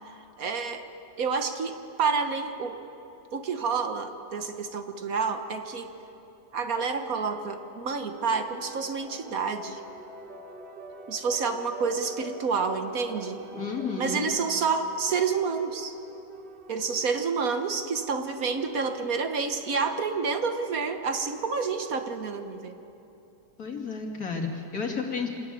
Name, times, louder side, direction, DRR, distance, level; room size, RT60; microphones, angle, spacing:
voice 1, 0.4-0.9 1.2-2.8 3.3-5.9 6.5-9.8 11.1-13.4 14.0-15.9 16.7-22.8, right 5 dB, 60° right, 7 dB, 1.5 m, -29 dB
sound 1, 8.1-22.5, right 3 dB, 75° right, 2.1 m, -46 dB
voice 2, 13.5-14.3 23.6-25.3, left 4 dB, 60° left, 0 dB, 2.8 m, -32 dB
25.5 x 13.5 x 9.3 m, 2.8 s
omnidirectional pair, 1.8 m